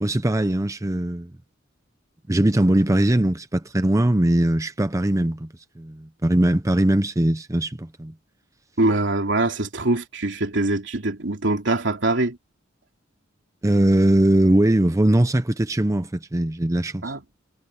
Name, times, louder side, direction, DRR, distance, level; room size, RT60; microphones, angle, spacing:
voice 1, 0.0-1.3 2.3-5.5 5.8-8.1 13.6-17.1, right 1 dB, 15° right, 0.7 m, -20 dB
voice 2, 8.8-12.4 17.0-17.2, right 2 dB, 70° right, 3.2 m, -23 dB
head